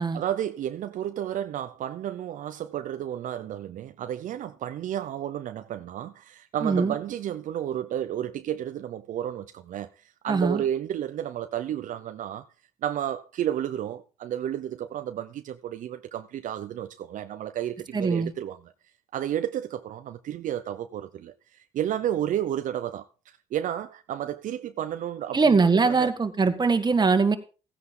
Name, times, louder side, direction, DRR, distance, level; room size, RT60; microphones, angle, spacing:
voice 1, 0.1-9.9 10.2-12.5 12.8-18.6 19.1-23.0 23.5-25.6 25.8-26.1, right 11 dB, 75° right, 0.7 m, -32 dB
voice 2, 6.6-6.9 10.3-10.6 17.9-18.3 25.3-27.4, right 4 dB, 30° right, 1.8 m, -22 dB
15.0 x 9.8 x 3.8 m
cardioid pair, 70°, 14 cm